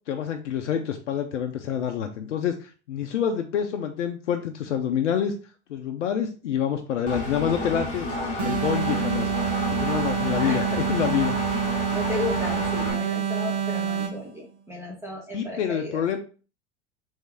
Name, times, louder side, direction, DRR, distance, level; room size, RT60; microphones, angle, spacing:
voice 1, 0.1-5.3 5.7-8.1 8.4-9.3 9.7-11.4 15.3-16.2, left 8 dB, 90° left, 5 dB, 0.6 m, -27 dB
Engine, 7.1-12.9, left 1 dB, 20° left, 1.8 m, -31 dB
sound 1, 8.4-14.3, right 8 dB, 60° right, 1.4 m, -27 dB
voice 2, 11.5-16.0, left 2 dB, 5° right, -1 dB, 1.1 m, -34 dB
3.6 x 3.2 x 3.3 m, 0.36 s
hypercardioid pair, 85°, 35 cm